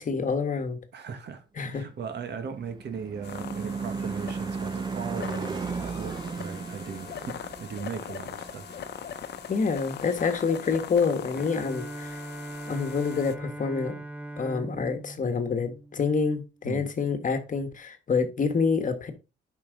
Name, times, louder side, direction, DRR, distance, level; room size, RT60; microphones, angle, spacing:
voice 1, 0.0-0.8 1.6-1.9 9.5-12.2 12.7-14.0 14.4-19.1, left 5 dB, 40° left, 1.4 m, -27 dB
voice 2, 0.9-8.7 16.6-16.9, right 6 dB, 60° right, 1.5 m, -38 dB
Car passing by / Truck / Engine, 2.0-10.7, right 5 dB, 20° right, 0.5 m, -36 dB
sound 1, 3.2-13.4, left 9 dB, 55° left, 0.8 m, -41 dB
Bowed string instrument, 11.3-16.6, right 1 dB, 5° right, 0.8 m, -40 dB
8.6 x 5.6 x 3.9 m
cardioid pair, 90°, 20 cm